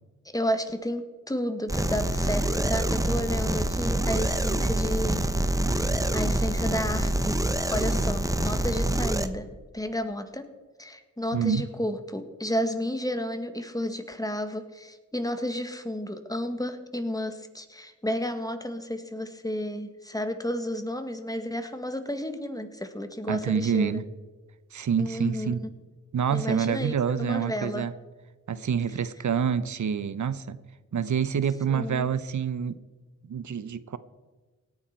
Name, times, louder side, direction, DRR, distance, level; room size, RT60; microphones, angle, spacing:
voice 1, 0.2-5.2 5.7-7.4 7.7-9.5 9.7-10.5 10.8-24.0 25.0-25.7 26.3-27.9 31.7-32.1, equal, 10° left, 8 dB, 1.7 m, -32 dB
sound 1, 1.7-9.3, right 1 dB, 10° right, 1.1 m, -26 dB
voice 2, 11.3-11.7 23.3-24.0 24.7-25.6 26.1-27.9 28.5-30.6 30.9-32.8 33.2-34.0, right 7 dB, 65° right, 15 dB, 0.8 m, -27 dB
17.5 x 9.6 x 4.5 m, 1.3 s
cardioid pair, 50°, 31 cm